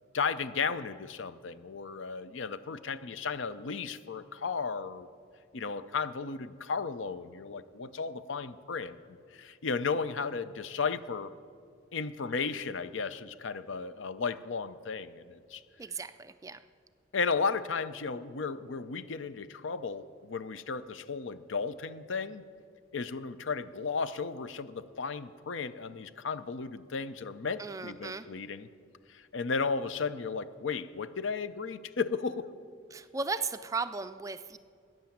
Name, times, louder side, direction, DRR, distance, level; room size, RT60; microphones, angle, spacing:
voice 1, 0.1-5.1 5.5-9.0 9.3-11.3 11.9-15.6 17.1-22.4 22.9-28.7 29.1-32.5, left 5 dB, 75° left, 14 dB, 0.6 m, -34 dB
voice 2, 15.8-16.6 27.6-28.3 32.9-34.6, right 4 dB, 15° right, 12 dB, 0.3 m, -36 dB
13.5 x 9.3 x 7.2 m, 2.3 s
head